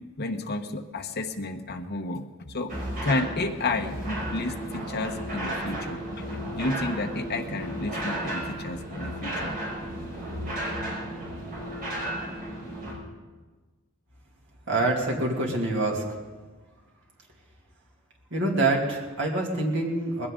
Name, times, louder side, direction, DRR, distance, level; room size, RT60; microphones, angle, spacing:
voice 1, 0.2-2.7 3.0-9.5, left 2 dB, 50° left, 4 dB, 1.1 m, -31 dB
sound 1, 2.7-12.9, right 1 dB, 40° right, 5.4 m, -33 dB
voice 2, 14.7-16.0 18.3-20.3, right 2 dB, 60° right, -1 dB, 2.6 m, -26 dB
20.0 x 15.5 x 3.8 m, 1.3 s
head